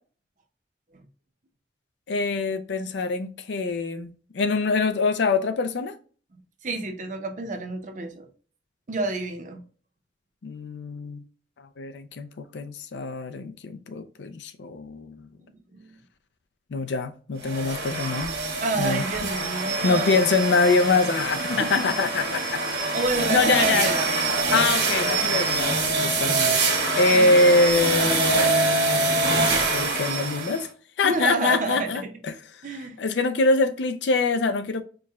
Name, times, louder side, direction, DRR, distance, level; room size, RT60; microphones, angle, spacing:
voice 1, 2.1-6.0 10.4-11.2 11.8-15.2 16.7-18.3 18.8-19.0 19.8-22.6 23.3-23.9 24.5-26.6 26.9-30.7 31.0-32.3 33.0-34.8, left 3 dB, 75° left, 0.4 m, -24 dB
voice 2, 6.6-8.3 8.9-9.6 15.5-16.0 18.6-20.4 21.4-21.9 22.9-24.2 27.1-27.5 31.0-32.1 32.6-33.0, right 3 dB, 45° right, 0.7 m, -29 dB
sound 1, 17.4-30.6, right 3 dB, 70° right, 1.4 m, -25 dB
4.5 x 2.2 x 3.4 m
head